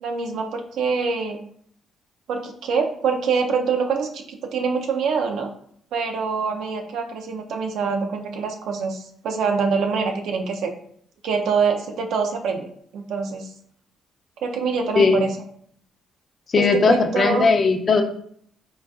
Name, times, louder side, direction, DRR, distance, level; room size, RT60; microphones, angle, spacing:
voice 1, 0.0-1.4 2.3-5.5 5.9-10.7 11.2-12.7 12.9-13.5 14.4-15.3 16.6-17.5, right 5 dB, 80° right, 4 dB, 0.4 m, -25 dB
voice 2, 16.5-18.0, left 4 dB, 40° left, 5 dB, 0.4 m, -18 dB
3.8 x 2.3 x 2.3 m, 0.63 s
cardioid pair, 90°, 0 cm